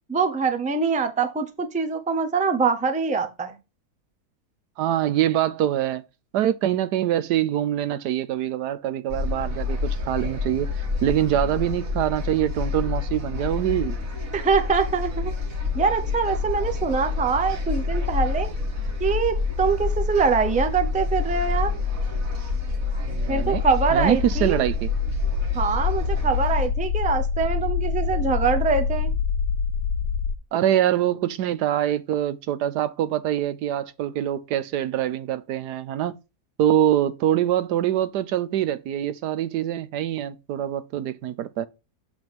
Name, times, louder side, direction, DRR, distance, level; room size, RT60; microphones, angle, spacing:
voice 1, 0.1-3.5 14.3-15.3 15.7-18.5 19.0-21.7 23.3-24.6 25.5-29.1, right 5 dB, 10° right, 0.4 m, -24 dB
voice 2, 4.8-6.0 6.3-10.7 11.0-14.0 23.1-23.6 23.9-24.9 30.5-36.1 36.6-41.7, right 11 dB, 90° right, 1.3 m, -24 dB
sound 1, 9.1-26.7, left 4 dB, 60° right, 1.9 m, -27 dB
sound 2, 23.4-30.4, left 5 dB, 85° left, 1.2 m, -26 dB
7.5 x 3.6 x 6.0 m
omnidirectional pair, 1.7 m